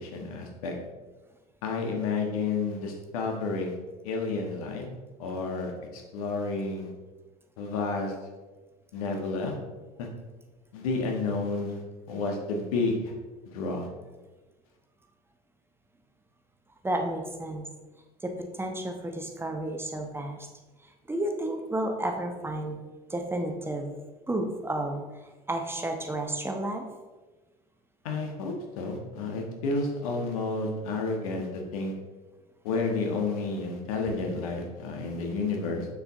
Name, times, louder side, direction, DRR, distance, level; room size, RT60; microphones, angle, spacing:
voice 1, 0.0-0.7 1.6-3.8 4.0-4.9 5.2-6.9 7.6-8.1 8.9-9.5 10.0-10.1 10.7-11.8 12.1-13.1 13.5-13.9 28.0-31.9 32.6-35.9, left 3 dB, 70° left, 2 dB, 1.4 m, -30 dB
voice 2, 16.8-17.7 18.2-20.5 20.8-22.8 23.1-23.9 24.3-25.0 25.5-26.8, right 1 dB, 10° right, 4 dB, 1.0 m, -31 dB
7.2 x 6.7 x 3.7 m, 1.2 s
figure-of-eight pair, 70°, 19 cm